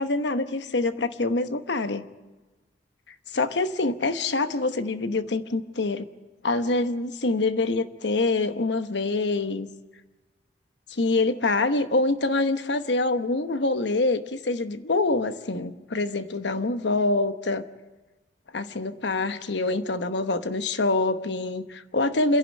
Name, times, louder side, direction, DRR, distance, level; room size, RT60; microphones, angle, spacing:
voice 1, 0.0-2.1 3.3-6.1 6.4-9.7 10.9-17.6 18.5-22.4, left 2 dB, 80° left, 10 dB, 1.1 m, -25 dB
28.0 x 11.0 x 9.0 m, 1.2 s
head